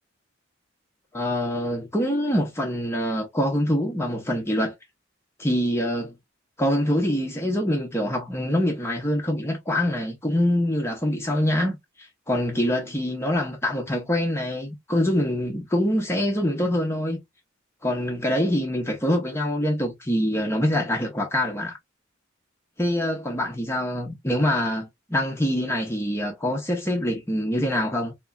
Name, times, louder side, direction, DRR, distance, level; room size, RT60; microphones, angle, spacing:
voice 1, 1.1-4.7 5.4-6.1 6.6-17.2 17.8-21.8 22.8-28.1, left 1 dB, 10° left, 0.7 m, -25 dB
3.7 x 2.9 x 2.2 m
head